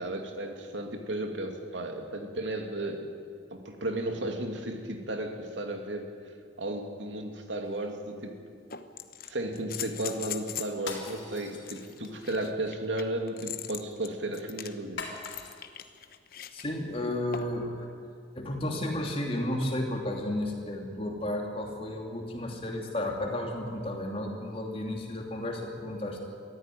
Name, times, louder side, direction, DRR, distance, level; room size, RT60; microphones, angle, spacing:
voice 1, 0.0-3.1 3.5-6.1 6.6-8.4 9.3-15.1, right 1 dB, 80° right, 4 dB, 2.6 m, -34 dB
sound 1, 7.6-7.7 8.7-10.8 11.6-16.7 17.3-17.7 19.3-19.4, left 10 dB, 50° left, 1.0 m, -41 dB
sound 2, 10.8-12.2 15.0-15.9, left 4 dB, 85° left, 3.8 m, -41 dB
voice 2, 16.5-17.9 18.3-26.2, left 1 dB, 30° left, 1 dB, 3.0 m, -33 dB
22.5 x 14.5 x 9.3 m, 2.3 s
head